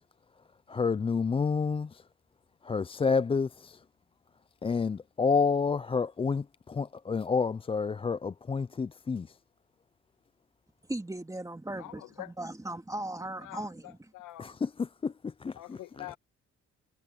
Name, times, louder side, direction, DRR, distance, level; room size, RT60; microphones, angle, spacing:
voice 1, 0.7-2.0 2.6-3.8 4.6-9.4 14.4-16.1, left 5 dB, 20° left, 0.4 m, -29 dB
voice 2, 10.9-14.0, right 1 dB, 10° right, 2.3 m, -38 dB
voice 3, 11.7-12.3 13.4-14.5 15.5-16.2, left 16 dB, 85° left, 1.7 m, -45 dB
cardioid pair, 90°, 30 cm